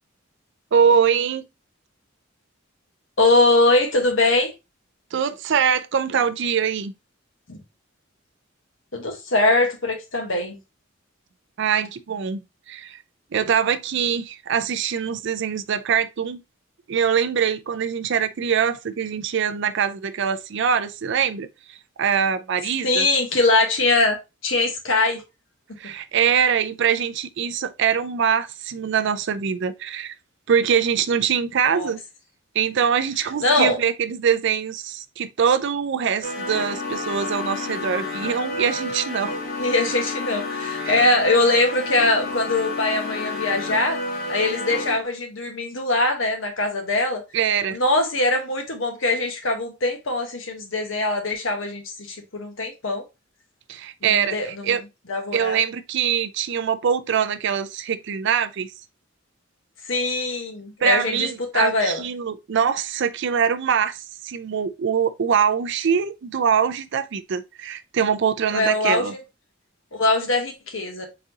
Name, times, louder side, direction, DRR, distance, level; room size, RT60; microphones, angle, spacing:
voice 1, 0.7-1.4 5.1-6.9 11.6-12.4 12.7-13.0 13.3-16.4 16.9-23.1 25.8-30.1 30.5-32.0 32.5-39.3 40.8-41.0 47.3-47.8 53.7-54.8 55.3-58.7 60.8-69.1, right 7 dB, 60° right, 0.4 m, -23 dB
voice 2, 3.2-4.5 7.5-7.6 8.9-10.6 22.8-24.2 24.4-25.2 31.6-31.9 33.4-33.8 39.6-44.0 44.3-47.2 47.7-53.0 54.0-54.8 55.1-55.6 59.8-62.0 68.5-69.2 69.9-71.1, left 2 dB, 70° left, 1.3 m, -22 dB
sound 1, 36.2-45.0, left 2 dB, 50° left, 1.1 m, -30 dB
4.1 x 3.7 x 2.8 m
head